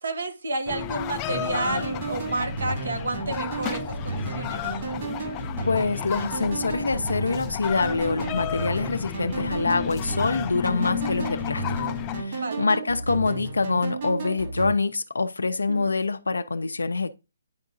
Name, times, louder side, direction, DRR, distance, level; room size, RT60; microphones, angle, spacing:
voice 1, 0.0-4.6 11.0-11.3 12.4-12.7 15.7-15.9, right 2 dB, 75° right, 0.9 m, -31 dB
sound 1, 0.7-12.2, left 12 dB, 25° left, 0.4 m, -33 dB
sound 2, 1.3-14.7, right 3 dB, 45° right, 2.2 m, -33 dB
voice 2, 5.7-17.1, left 3 dB, 85° left, 0.5 m, -25 dB
10.5 x 3.7 x 2.6 m
hypercardioid pair, 150°, 0 cm